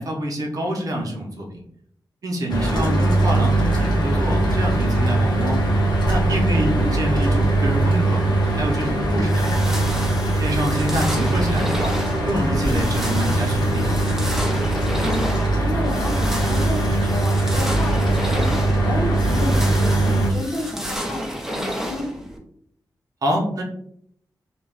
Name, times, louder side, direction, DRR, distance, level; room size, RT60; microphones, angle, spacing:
voice 1, 0.0-1.6 2.2-5.6 6.1-8.2 8.5-10.0 10.4-11.9 12.2-14.0 23.2-23.6, right 1 dB, 55° right, 0 dB, 0.6 m, -26 dB
Mechanical fan, 2.5-20.3, right 2 dB, 75° left, 0.8 m, -21 dB
voice 2, 2.6-3.0 6.5-6.9 15.0-22.1, left 1 dB, 30° left, -2 dB, 0.8 m, -30 dB
sound 1, 9.2-22.4, equal, 5° right, 0.4 m, -31 dB
2.2 x 2.2 x 3.4 m, 0.67 s
wide cardioid pair, 150°, 7 cm